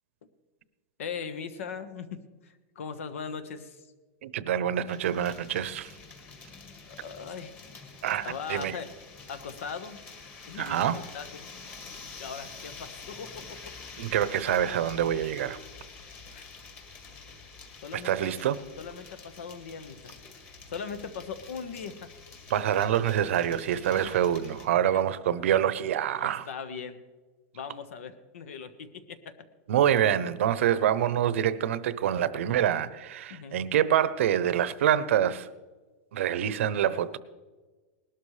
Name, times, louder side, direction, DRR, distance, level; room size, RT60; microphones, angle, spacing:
voice 1, 1.0-3.9 6.8-7.6 8.2-8.9 9.3-10.0 10.5-11.5 12.2-13.7 16.3-16.4 17.8-18.3 18.8-20.2 20.7-22.1 23.9-24.2 26.2-27.0 27.5-29.4 33.3-33.6, left 6 dB, 85° left, 1.3 m, -39 dB
voice 2, 4.2-5.9 8.0-8.8 10.6-11.0 14.0-15.6 17.9-18.6 22.5-26.5 29.7-35.5 36.1-37.2, right 10 dB, 75° right, 0.8 m, -26 dB
sound 1, 4.9-24.7, left 4 dB, 25° left, 1.9 m, -47 dB
19.5 x 12.5 x 3.3 m
supercardioid pair, 170°, 7 cm